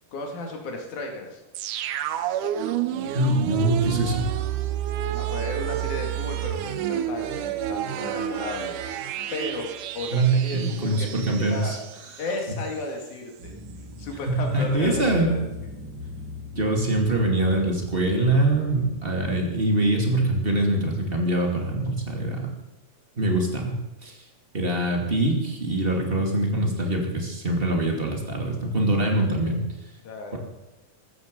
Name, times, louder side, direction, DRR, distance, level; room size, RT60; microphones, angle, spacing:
voice 1, 0.1-1.4 5.2-8.8 9.3-11.8 12.2-13.5 14.0-15.4 30.0-30.4, left 2 dB, 70° left, 2 dB, 4.0 m, -34 dB
sound 1, 1.6-12.4 12.7-12.8, right 11 dB, 85° right, 2.4 m, -30 dB
voice 2, 3.1-4.3 10.1-11.8 14.3-15.3 16.6-22.5 23.2-23.8 24.0-24.2 24.5-29.6, right 2 dB, 20° right, 1 dB, 2.5 m, -23 dB
sound 2, 13.4-19.5, left 3 dB, 45° right, 2.6 m, -39 dB
15.5 x 13.5 x 5.4 m, 1.0 s
omnidirectional pair, 3.6 m